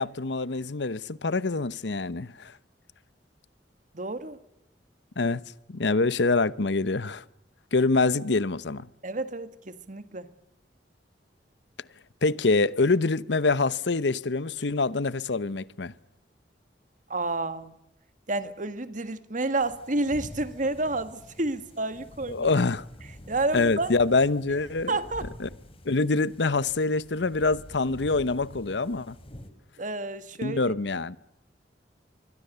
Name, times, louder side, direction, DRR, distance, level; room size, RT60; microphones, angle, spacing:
voice 1, 0.0-2.5 5.2-5.4 5.7-7.2 7.7-8.9 12.2-15.9 22.3-22.9 23.5-24.9 25.4-25.5 25.8-29.2 30.4-31.2, left 3 dB, 80° left, 0.9 m, -25 dB
voice 2, 3.9-4.4 9.0-10.3 17.1-17.8 18.3-22.5 23.3-23.9 24.9-25.3 29.8-30.7, right 2 dB, 45° right, 1.7 m, -30 dB
sound 1, 19.6-29.5, equal, 35° left, 3.1 m, -47 dB
26.0 x 23.0 x 6.9 m
head